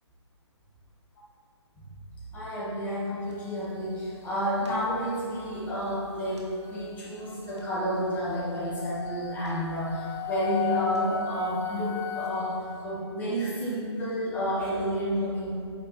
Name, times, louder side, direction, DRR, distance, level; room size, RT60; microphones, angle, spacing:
voice 1, 2.3-12.6 12.8-15.6, equal, 10° left, -8 dB, 2.1 m, -30 dB
sound 1, 3.3-12.8, left 8 dB, 70° right, 1.8 m, -37 dB
9.3 x 5.2 x 4.7 m, 2.3 s
figure-of-eight pair, 140°, 15 cm